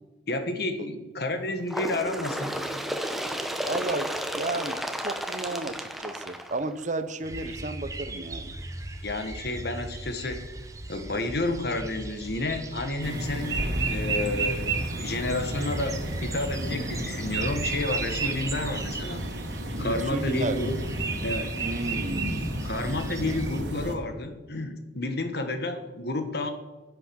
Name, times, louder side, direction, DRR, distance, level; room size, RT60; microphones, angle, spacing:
voice 1, 0.3-2.7 9.0-10.4 10.9-14.7 15.0-19.2 19.8-20.8 21.2-21.5 22.6-26.5, left 2 dB, 60° left, 8 dB, 1.5 m, -30 dB
Bird, 1.7-7.1 8.0-8.1 8.5-8.6 9.5-9.6 10.5-10.6 11.5-11.6, equal, ahead, 0.9 m, -33 dB
voice 2, 3.6-4.1 4.4-4.8 5.0-8.5 19.9-20.6 21.6-22.3 23.2-23.4, right 2 dB, 40° right, 11 dB, 0.9 m, -32 dB
sound 1, 7.2-23.6, right 2 dB, 20° right, 1.1 m, -39 dB
sound 2, 13.0-23.9, right 2 dB, 70° right, 2.1 m, -31 dB
11.0 x 8.7 x 7.0 m, 1.2 s
head